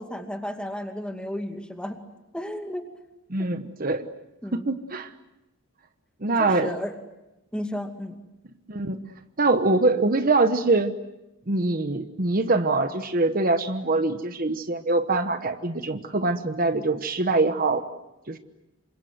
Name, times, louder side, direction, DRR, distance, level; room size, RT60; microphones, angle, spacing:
voice 1, 0.0-2.0 2.3-2.9 3.4-3.5 4.4-4.7 6.4-6.9 7.5-8.2, equal, 5° left, 5 dB, 2.4 m, -33 dB
voice 2, 3.3-4.1 4.5-5.1 6.2-6.7 8.7-9.0 9.4-10.9 11.5-17.8 18.3-18.4, right 3 dB, 45° right, 9 dB, 1.1 m, -23 dB
28.5 x 25.5 x 8.0 m, 0.97 s
head